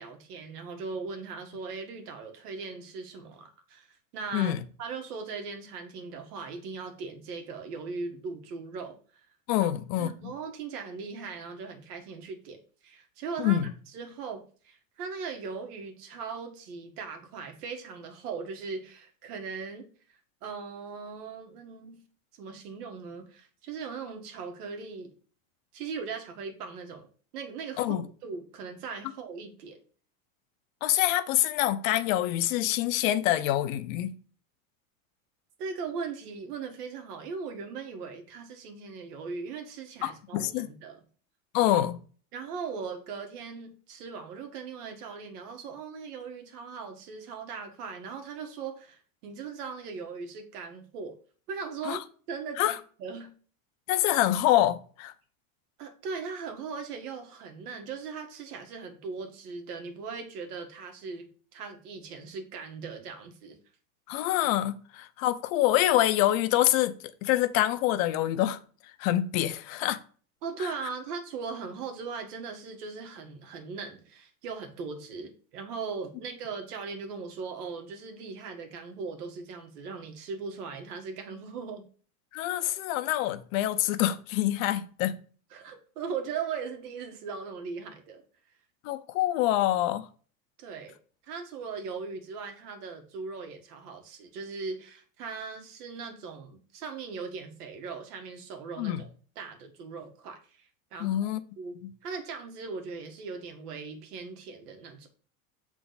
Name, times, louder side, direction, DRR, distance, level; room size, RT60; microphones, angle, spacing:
voice 1, 0.0-3.9 4.1-9.2 9.6-9.7 10.0-13.6 13.9-22.0 22.4-25.1 25.7-27.1 27.3-28.0 28.2-29.8 35.6-41.0 42.3-51.2 51.5-52.0 52.3-53.3 55.8-61.3 61.5-63.6 70.4-81.8 85.5-88.2 90.6-90.9 91.2-99.1 99.3-101.8 102.0-105.1, right 5 dB, 85° right, 1.7 m, -39 dB
voice 2, 9.5-10.3 13.4-13.7 27.8-28.1 30.8-34.2 40.0-40.7 41.5-42.0 51.8-52.0 52.6-52.8 53.9-55.1 64.1-66.9 67.2-68.6 69.0-70.0 70.6-70.7 82.3-85.2 88.8-90.1 98.8-99.0 101.0-101.4 101.8-101.9, left 13 dB, 65° left, 0.7 m, -26 dB
6.8 x 3.6 x 4.0 m
supercardioid pair, 140°, 45 cm